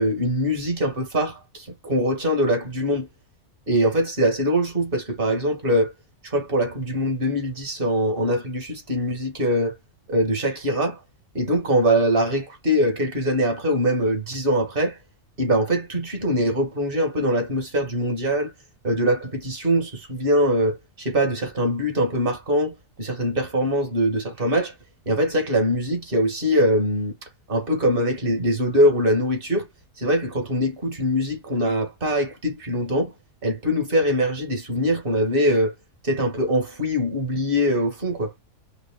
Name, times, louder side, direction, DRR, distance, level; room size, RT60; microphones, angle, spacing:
voice 1, 0.0-3.1 3.7-5.9 6.2-9.8 10.1-11.0 11.3-15.0 15.4-18.5 18.8-24.7 25.1-27.1 27.5-29.7 30.0-33.1 33.4-35.7 36.0-38.3, equal, 45° right, 2.0 m, -22 dB
4.8 x 3.2 x 2.3 m
omnidirectional pair, 1.4 m